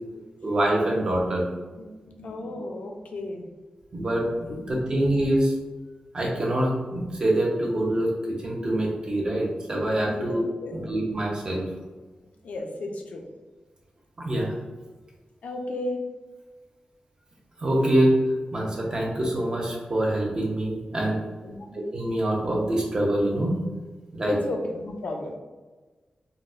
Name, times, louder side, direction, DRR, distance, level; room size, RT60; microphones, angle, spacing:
voice 1, 0.4-1.4 3.9-5.5 6.1-10.4 10.7-11.6 14.2-14.5 17.6-18.1 18.5-21.2 21.7-23.6 24.1-24.3, right 1 dB, 35° right, -2 dB, 0.7 m, -25 dB
voice 2, 1.8-3.4 4.5-4.9 10.0-10.9 12.4-13.2 15.4-16.0 21.4-21.8 24.3-25.3, left 2 dB, 80° left, 2 dB, 0.5 m, -34 dB
3.9 x 2.1 x 2.4 m, 1.3 s
wide cardioid pair, 160°, 2 cm